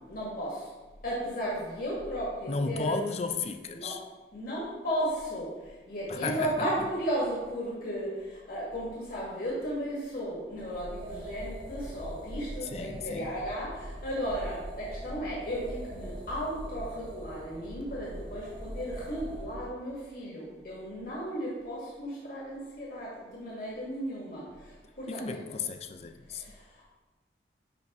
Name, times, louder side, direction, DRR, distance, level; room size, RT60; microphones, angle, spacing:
voice 1, 0.1-0.7 1.0-3.0 3.7-3.9 4.3-25.4 26.3-26.9, equal, 55° left, -6 dB, 1.7 m, -35 dB
voice 2, 2.5-4.0 6.1-6.7 12.6-13.3 25.1-26.4, left 4 dB, 35° left, 8 dB, 0.4 m, -34 dB
sound 1, 10.5-19.7, right 1 dB, 30° right, 0.8 m, -42 dB
10.0 x 3.9 x 3.5 m, 1.2 s
head